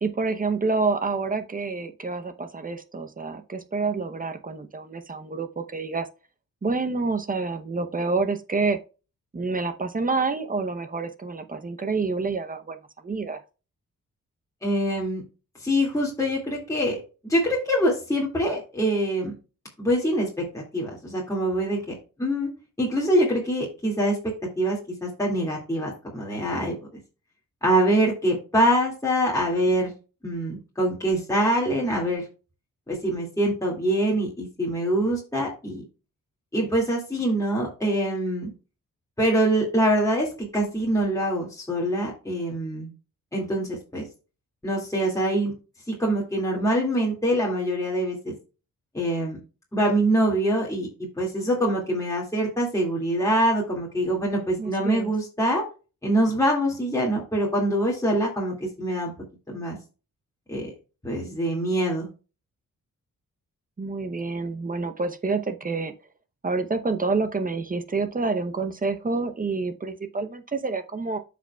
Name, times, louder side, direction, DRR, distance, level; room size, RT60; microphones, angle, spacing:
voice 1, 0.0-6.1 6.6-8.8 9.3-12.8 13.0-13.4 54.6-55.1 63.8-65.9 66.4-71.2, right 4 dB, 25° right, 0.7 m, -28 dB
voice 2, 14.6-15.2 15.6-17.0 17.3-19.3 19.8-21.8 22.2-22.5 22.8-24.2 24.6-26.8 27.6-29.9 30.2-32.2 32.9-35.8 36.5-38.5 39.2-42.9 43.3-44.1 44.6-45.5 45.9-48.3 48.9-49.4 49.7-50.9 51.2-55.6 56.0-59.1 59.5-59.8 60.5-60.7 61.0-62.1, right 1 dB, 10° left, 2.2 m, -24 dB
13.5 x 5.1 x 2.3 m
wide cardioid pair, 120°, 34 cm